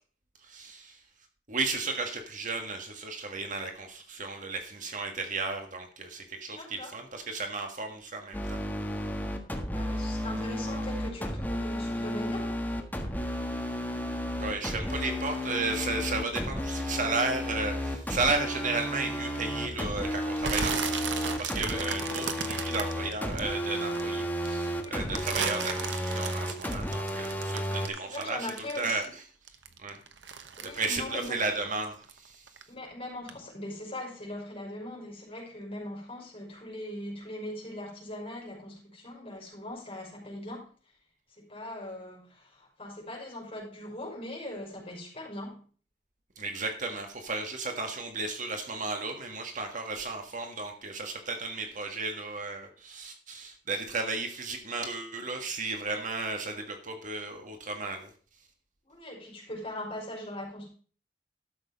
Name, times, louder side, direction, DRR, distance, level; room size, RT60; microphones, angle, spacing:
voice 1, 0.5-1.0 1.5-8.6 14.4-28.5 28.7-29.0 29.8-30.0 30.6-32.4 46.4-58.1, right 3 dB, 45° right, 4 dB, 1.6 m, -34 dB
voice 2, 6.5-6.9 9.7-12.6 24.7-25.0 28.0-29.1 30.6-31.4 32.7-40.7 41.4-45.6 58.8-60.7, left 1 dB, 30° left, -2 dB, 5.2 m, -40 dB
sound 1, 8.3-27.9, equal, 10° left, 1.5 m, -33 dB
sound 2, 20.4-24.0 24.4-29.2 29.5-32.2 32.5-32.9 33.3-33.4, right 6 dB, 75° right, 1.1 m, -35 dB
12.5 x 6.7 x 5.1 m, 0.40 s
head